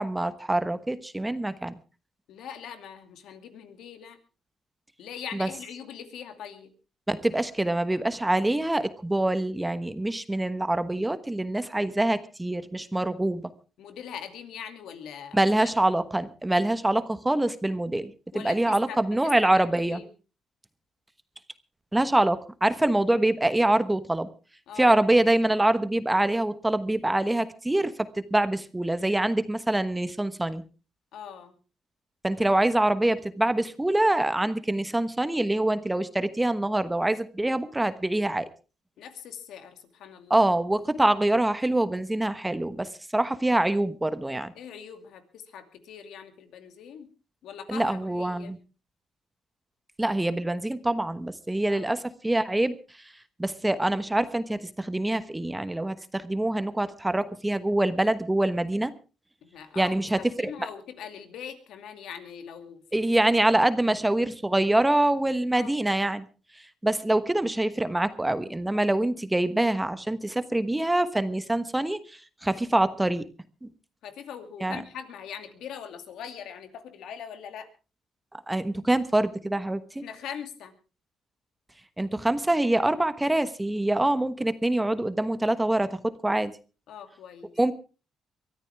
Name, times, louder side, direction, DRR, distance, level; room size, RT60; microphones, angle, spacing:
voice 1, 0.0-1.8 5.3-5.5 7.1-13.5 15.3-20.0 21.9-24.3 24.8-30.6 32.2-38.5 40.3-44.5 47.7-48.6 50.0-52.8 53.4-58.9 59.7-60.5 62.9-66.2 66.8-72.0 72.4-73.2 74.6-74.8 78.5-80.0 82.0-86.5 87.6-87.7, right 1 dB, 10° right, 12 dB, 1.2 m, -25 dB
voice 2, 2.3-4.2 5.0-6.7 13.8-15.4 18.3-20.1 24.7-25.1 31.1-31.6 39.0-40.4 44.5-47.1 47.4-48.5 51.7-51.9 59.4-63.2 63.5-63.6 65.5-65.7 74.0-77.7 79.9-80.7 86.9-87.5, left 8 dB, 80° left, 8 dB, 2.5 m, -42 dB
23.0 x 13.5 x 3.5 m, 0.34 s
cardioid pair, 90°, 0 cm